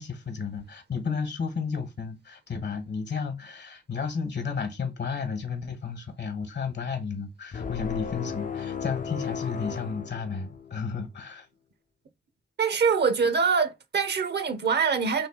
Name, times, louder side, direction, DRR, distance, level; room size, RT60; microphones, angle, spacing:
voice 1, 0.0-11.5, left 5 dB, 65° left, 1.1 m, -32 dB
sound 1, 7.5-10.9, left 6 dB, 45° left, 0.4 m, -35 dB
voice 2, 12.6-15.3, right 5 dB, 60° right, 0.7 m, -24 dB
3.4 x 2.7 x 3.6 m
cardioid pair, 50°, 20 cm